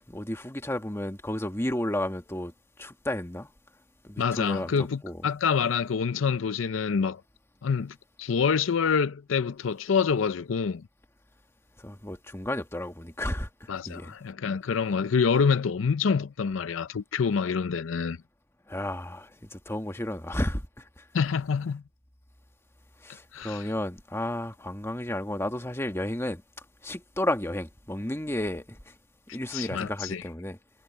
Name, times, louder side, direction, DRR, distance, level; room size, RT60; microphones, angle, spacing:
voice 1, 0.1-2.5 2.8-3.5 4.0-5.3 11.8-14.1 18.7-21.1 23.0-28.9 29.3-30.6, left 1 dB, 15° left, 1.4 m, -32 dB
voice 2, 4.2-7.2 7.6-10.8 13.7-18.2 21.1-21.8 23.3-23.6 29.5-30.2, left 6 dB, 70° left, 0.5 m, -26 dB
head